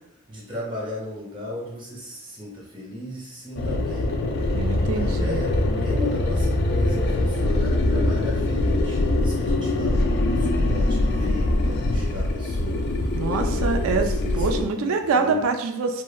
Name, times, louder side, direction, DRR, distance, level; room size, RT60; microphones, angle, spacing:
voice 1, 0.3-4.1 4.9-12.8 13.3-15.5, left 2 dB, 25° right, -4 dB, 0.7 m, -35 dB
sound 1, 3.6-14.6, left 2 dB, 55° left, 0.3 m, -23 dB
voice 2, 4.5-5.4 13.1-16.0, right 4 dB, 75° right, 6 dB, 0.3 m, -25 dB
2.9 x 2.1 x 2.3 m, 0.82 s
head